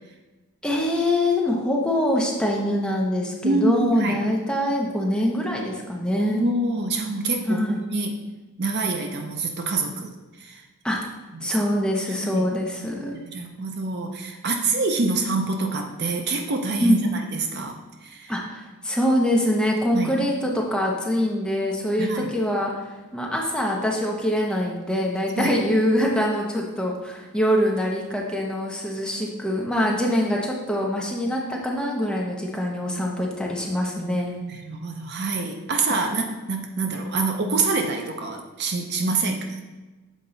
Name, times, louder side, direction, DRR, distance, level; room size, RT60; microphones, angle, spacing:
voice 1, 0.6-6.4 7.5-7.8 10.8-11.0 11.4-13.2 16.8-17.0 18.3-22.7 23.1-34.4, left 1 dB, 5° left, -2 dB, 0.8 m, -24 dB
voice 2, 3.4-4.2 6.1-8.2 8.6-10.1 10.4-10.6 11.3-11.5 12.1-12.5 13.2-17.0 17.3-17.8 18.0-18.3 19.9-20.2 22.0-22.3 25.4-25.5 34.5-39.6, right 3 dB, 45° right, 3 dB, 0.6 m, -26 dB
7.3 x 4.5 x 3.9 m, 1.2 s
head